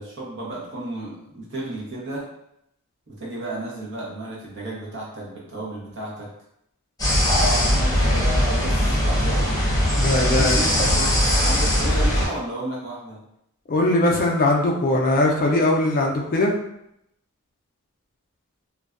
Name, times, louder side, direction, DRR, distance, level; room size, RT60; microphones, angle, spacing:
voice 1, 0.0-2.3 3.1-6.3 7.2-9.5 10.2-13.2, right 2 dB, 55° right, -5 dB, 0.9 m, -33 dB
sound 1, 7.0-12.2, equal, 15° left, 0.8 m, -20 dB
voice 2, 9.9-10.6 13.7-16.5, left 1 dB, 40° left, 0 dB, 0.4 m, -20 dB
2.5 x 2.2 x 2.4 m, 0.78 s
head